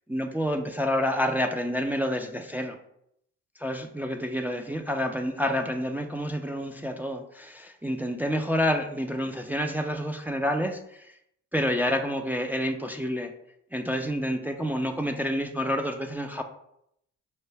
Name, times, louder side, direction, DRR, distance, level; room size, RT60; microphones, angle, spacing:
voice 1, 0.1-2.8 3.6-11.1 11.5-13.3 13.7-16.4, equal, 5° right, 4 dB, 0.3 m, -28 dB
5.4 x 2.2 x 3.3 m, 0.75 s
cardioid pair, 90°, 30 cm